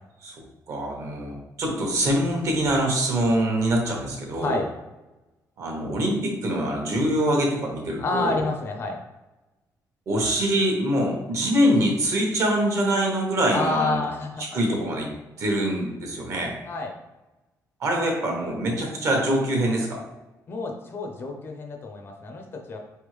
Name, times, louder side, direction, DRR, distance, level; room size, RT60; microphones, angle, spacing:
voice 1, 0.2-4.6 5.6-8.4 10.1-14.0 14.5-15.1 15.4-16.6 17.8-20.0, right 1 dB, 55° right, 0 dB, 1.1 m, -24 dB
voice 2, 8.0-9.0 13.5-14.4 16.7-16.9 20.5-22.8, left 3 dB, 35° left, 3 dB, 0.6 m, -29 dB
4.1 x 3.5 x 3.2 m, 1.1 s
cardioid pair, 165°, 6 cm